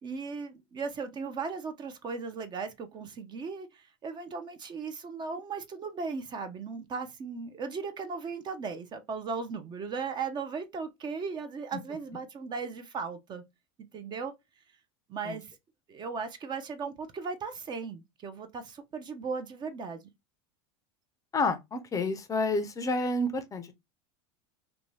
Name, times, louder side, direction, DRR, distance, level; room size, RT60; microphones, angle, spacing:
voice 1, 0.0-13.4 13.9-14.3 15.1-15.5 15.9-20.1, right 5 dB, 30° right, 0.5 m, -37 dB
voice 2, 21.3-23.7, left 2 dB, 20° left, 0.5 m, -29 dB
2.7 x 2.2 x 3.0 m
supercardioid pair, 115°, 15 cm